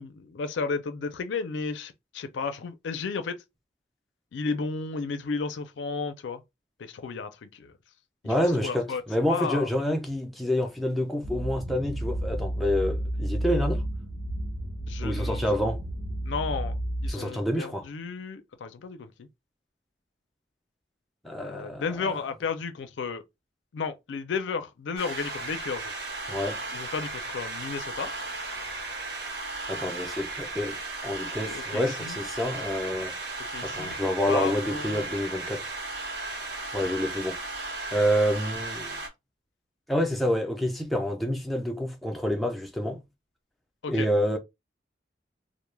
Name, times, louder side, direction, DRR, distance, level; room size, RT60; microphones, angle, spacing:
voice 1, 0.0-3.4 4.3-6.4 6.8-7.7 8.2-8.3 8.6-9.0 9.3-9.7 14.9-15.5 16.2-16.7 17.0-19.3 21.4-23.2 23.7-25.9 26.7-28.1 31.5-32.2 33.5-34.0 34.3-35.1 43.8-44.1, left 5 dB, 90° left, 0.4 m, -33 dB
voice 2, 8.2-13.8 15.0-15.8 17.1-17.9 21.2-22.2 26.3-26.6 29.7-30.8 31.0-33.1 33.6-35.7 36.7-37.4 37.9-39.0 39.9-43.0 43.9-44.4, equal, ahead, 0.3 m, -28 dB
sound 1, 11.2-17.1, right 1 dB, 90° right, 0.9 m, -31 dB
sound 2, 25.0-39.1, right 3 dB, 60° right, 0.7 m, -35 dB
2.2 x 2.0 x 3.1 m
head